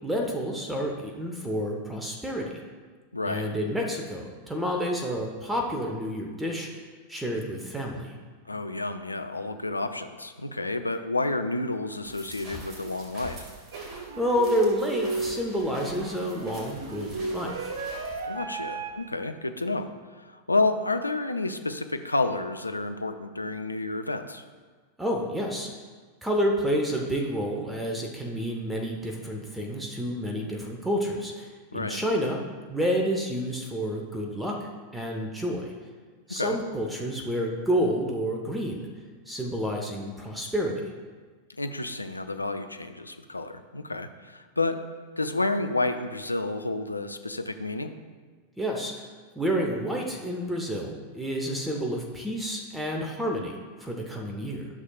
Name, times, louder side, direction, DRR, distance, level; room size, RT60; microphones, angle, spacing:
voice 1, 0.0-2.5 3.3-6.8 7.1-8.1 14.2-17.7 25.0-25.7 26.2-32.4 32.7-35.7 36.3-38.9 39.3-40.9 48.6-49.1 49.3-54.7, equal, 5° right, 0 dB, 1.0 m, -29 dB
voice 2, 3.1-3.4 8.5-13.5 18.3-19.9 20.2-24.4 31.7-32.0 36.3-36.6 41.6-44.8 45.2-47.9, left 2 dB, 85° left, 8 dB, 0.5 m, -30 dB
sound 1, 12.0-18.2, equal, 30° right, 2.0 m, -45 dB
sound 2, 13.7-19.0, right 3 dB, 60° right, 0.8 m, -34 dB
12.5 x 6.4 x 2.4 m, 1.4 s
figure-of-eight pair, 90°, 0 cm